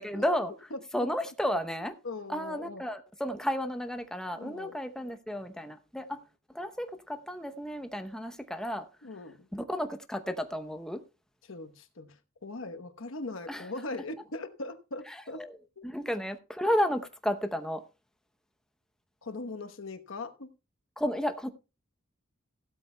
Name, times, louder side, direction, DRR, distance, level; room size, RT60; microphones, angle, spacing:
voice 1, 0.0-0.5 0.9-2.0 2.3-6.2 6.5-8.9 9.5-11.0 13.5-13.7 15.1-15.6 15.8-17.8 21.0-21.5, equal, 5° left, 0.7 m, -32 dB
voice 2, 2.0-2.8 4.3-4.8 9.0-9.5 11.4-15.4 15.8-15.9 19.2-20.5, left 2 dB, 80° left, 1.1 m, -40 dB
15.5 x 12.5 x 2.2 m
head